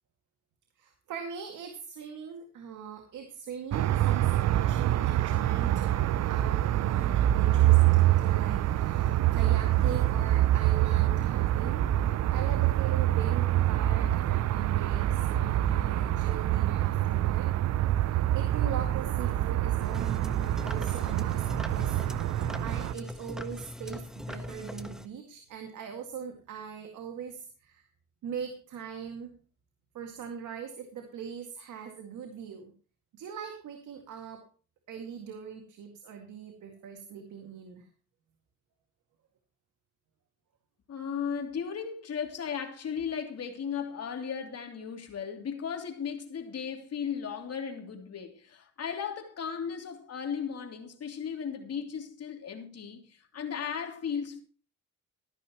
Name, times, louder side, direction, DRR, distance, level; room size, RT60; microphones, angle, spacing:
voice 1, 0.8-6.0 6.3-17.5 18.1-22.0 22.6-27.8 28.2-29.3 29.9-32.7 33.1-34.4 34.9-37.9, right 7 dB, 75° right, 2.2 m, -41 dB
sound 1, 3.7-22.9, right 14 dB, 60° right, 0.6 m, -26 dB
sound 2, 19.8-25.1, left 1 dB, ahead, 1.3 m, -40 dB
voice 2, 40.9-54.4, left 7 dB, 55° left, 3.1 m, -36 dB
14.0 x 12.0 x 3.0 m
cardioid pair, 90°, 30 cm